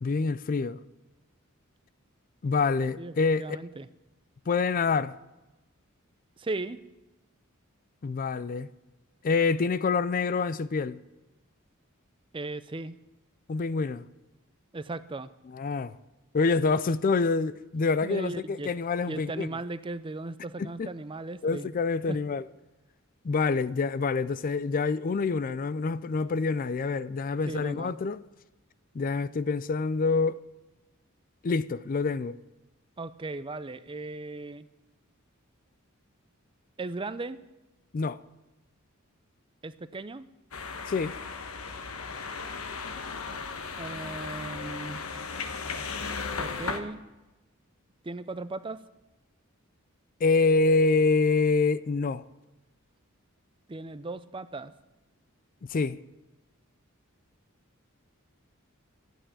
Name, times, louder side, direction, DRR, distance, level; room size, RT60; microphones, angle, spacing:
voice 1, 0.0-0.8 2.4-3.5 4.5-5.1 8.0-8.7 9.2-11.0 13.5-14.1 15.5-15.9 16.3-19.5 20.6-20.9 21.4-22.4 23.2-28.2 28.9-30.4 31.4-32.4 37.9-38.2 40.9-41.1 50.2-52.2 55.7-56.0, left 4 dB, 40° left, 0.4 m, -26 dB
voice 2, 3.0-3.9 6.4-6.8 12.3-13.0 14.7-15.3 18.0-18.7 19.1-21.7 22.1-22.2 27.4-28.0 33.0-34.7 36.8-37.4 39.6-40.3 43.8-45.0 46.4-47.0 48.0-48.8 53.7-54.7, right 2 dB, 25° right, 0.5 m, -37 dB
sound 1, 40.5-46.8, left 4 dB, 90° left, 1.2 m, -36 dB
13.5 x 9.1 x 8.7 m
head